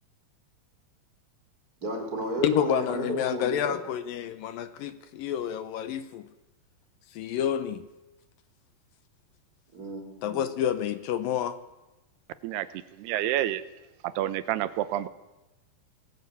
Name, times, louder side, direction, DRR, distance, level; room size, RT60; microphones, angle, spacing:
voice 1, 1.8-3.8 9.7-10.4, right 1 dB, 20° right, 3 dB, 4.2 m, -33 dB
voice 2, 2.4-6.3 7.1-7.9 10.2-11.6, left 10 dB, 75° left, 12 dB, 2.4 m, -29 dB
voice 3, 13.0-13.6 14.2-15.1, right 13 dB, 90° right, 14 dB, 2.9 m, -28 dB
21.5 x 16.5 x 8.4 m, 1.0 s
omnidirectional pair, 4.6 m